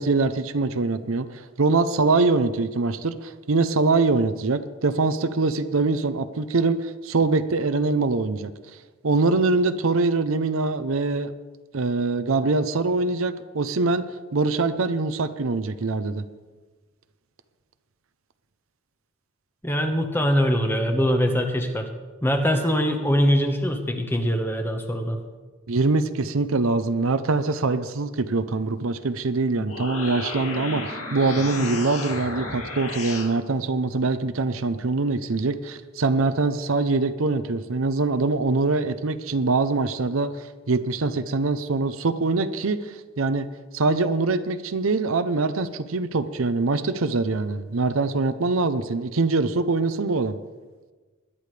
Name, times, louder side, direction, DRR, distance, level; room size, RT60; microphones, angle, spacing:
voice 1, 0.0-8.5 9.0-11.3 11.7-14.1 14.3-16.2 25.7-43.5 43.7-50.4, right 3 dB, 70° right, 11 dB, 0.7 m, -23 dB
voice 2, 19.6-21.9 22.2-25.2, equal, 10° left, 3 dB, 1.2 m, -22 dB
sound 1, 29.5-33.3, left 3 dB, 75° left, 2.4 m, -33 dB
20.5 x 11.0 x 3.3 m, 1.3 s
head